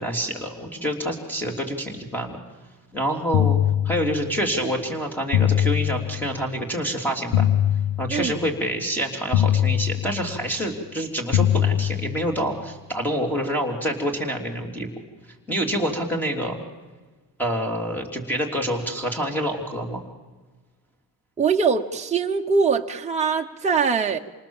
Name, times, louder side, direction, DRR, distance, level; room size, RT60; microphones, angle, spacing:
voice 1, 0.0-2.4 2.9-3.6 3.8-7.5 8.0-14.9 15.5-16.6 17.4-20.0, equal, 5° left, 3.4 m, -27 dB
sound 1, 3.3-4.5 5.3-6.5 7.3-8.5 9.3-10.5 11.3-12.5, left 11 dB, 60° left, 0.8 m, -23 dB
voice 2, 21.4-24.2, right 5 dB, 20° right, 1.1 m, -22 dB
28.5 x 28.0 x 7.4 m
cardioid pair, 170°, 38 cm